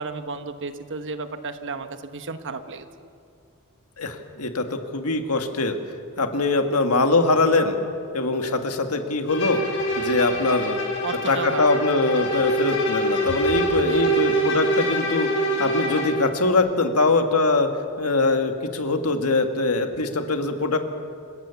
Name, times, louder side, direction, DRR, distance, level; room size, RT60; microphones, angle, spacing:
voice 1, 0.0-2.9 11.0-11.7 13.8-14.3, right 4 dB, 55° right, 9 dB, 1.2 m, -33 dB
voice 2, 4.0-5.8 6.2-7.8 8.1-9.6 10.0-10.8 11.3-15.3 15.6-17.7 18.0-20.8, left 3 dB, 75° left, 6 dB, 1.8 m, -22 dB
Bowed string instrument, 9.3-16.2, right 1 dB, 55° left, 4.4 m, -25 dB
27.5 x 16.5 x 7.1 m, 2.5 s
head